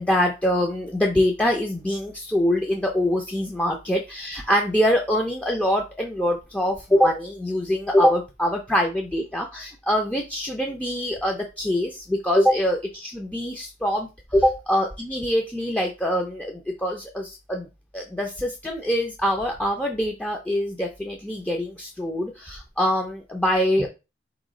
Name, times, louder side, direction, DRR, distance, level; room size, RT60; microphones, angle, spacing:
voice 1, 0.0-17.7 17.9-23.9, equal, 5° left, 1 dB, 0.5 m, -24 dB
4.3 x 3.0 x 3.7 m, 0.27 s
head